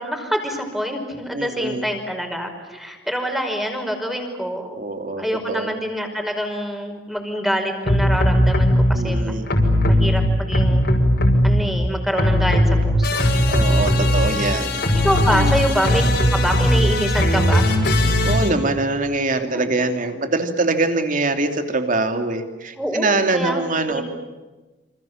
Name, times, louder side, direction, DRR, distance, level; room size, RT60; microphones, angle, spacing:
voice 1, 0.0-4.8 5.2-9.4 9.8-10.9 11.4-13.3 13.7-14.2 15.0-16.0 16.3-17.8 19.4-19.6 22.8-23.1 23.3-24.0, equal, ahead, 4 dB, 5.3 m, -25 dB
voice 2, 1.3-1.9 4.8-5.7 8.9-9.5 13.5-14.9 15.3-15.6 17.9-24.0, right 2 dB, 45° right, 6 dB, 3.0 m, -23 dB
sound 1, 7.9-9.0 9.5-11.9 12.1-18.5, equal, 65° left, 6.0 m, -18 dB
28.5 x 27.0 x 7.4 m, 1.2 s
head